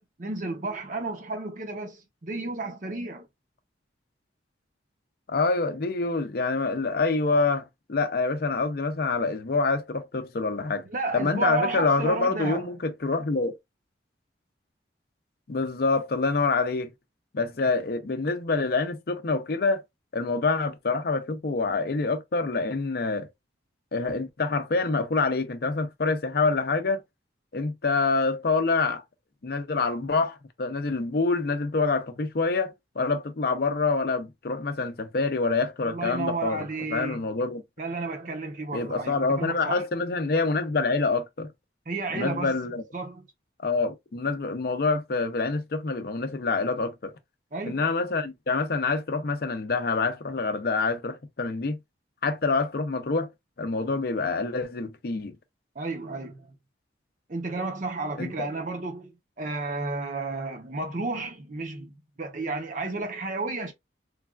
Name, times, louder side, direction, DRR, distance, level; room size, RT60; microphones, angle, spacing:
voice 1, 0.0-3.3 10.8-12.7 35.8-37.2 37.8-39.8 41.9-42.6 42.9-43.3 47.5-47.8 55.8-56.6 57.3-59.1 59.4-63.7, right 3 dB, 45° right, 0.7 m, -32 dB
voice 2, 5.3-7.6 7.9-10.8 11.1-13.5 15.5-16.9 17.3-19.8 20.1-23.3 23.9-27.0 27.5-29.0 29.4-37.6 38.7-41.5 42.1-42.8 43.6-47.1 47.7-51.8 52.2-53.3 53.6-55.4 58.2-58.5, left 3 dB, 50° left, 0.5 m, -26 dB
3.1 x 2.3 x 2.3 m
head